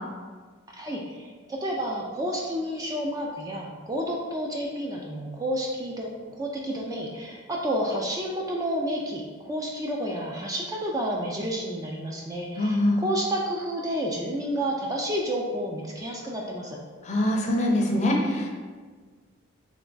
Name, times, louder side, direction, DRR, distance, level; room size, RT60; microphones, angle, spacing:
voice 1, 0.7-16.8, equal, 15° right, -1 dB, 0.3 m, -30 dB
voice 2, 12.6-13.0 17.0-18.5, left 1 dB, 35° left, 0 dB, 0.5 m, -23 dB
3.4 x 3.0 x 3.8 m, 1.5 s
head